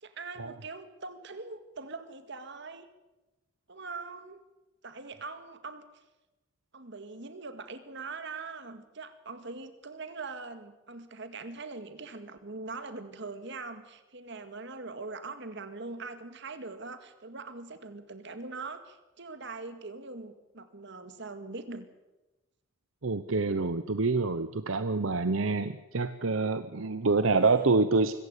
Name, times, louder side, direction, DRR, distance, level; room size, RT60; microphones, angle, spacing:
voice 1, 0.0-2.9 3.7-4.4 4.8-5.9 6.7-21.9 24.9-25.3 26.8-27.7, right 3 dB, 60° right, 10 dB, 2.0 m, -42 dB
voice 2, 23.0-28.1, right 3 dB, 85° right, 11 dB, 0.9 m, -27 dB
25.0 x 15.0 x 8.3 m, 1.0 s
head